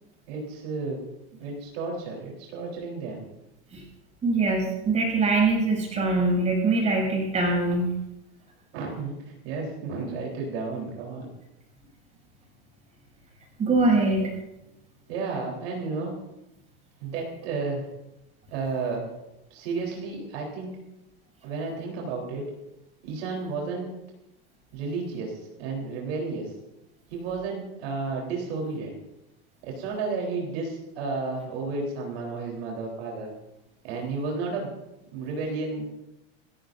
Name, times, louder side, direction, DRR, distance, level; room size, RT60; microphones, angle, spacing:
voice 1, 0.3-1.0 1.3-3.2 8.7-11.3 15.1-16.2 17.0-17.9 18.5-19.1 19.5-20.8 21.4-22.5 23.0-23.9 24.7-26.5 27.1-28.9 29.6-33.3 33.8-34.7 35.1-35.9, right 4 dB, 65° right, -1 dB, 3.9 m, -32 dB
voice 2, 4.2-7.9 13.6-14.3, right 3 dB, 20° right, -1 dB, 6.6 m, -23 dB
29.5 x 13.5 x 2.6 m, 0.93 s
supercardioid pair, 155°, 32 cm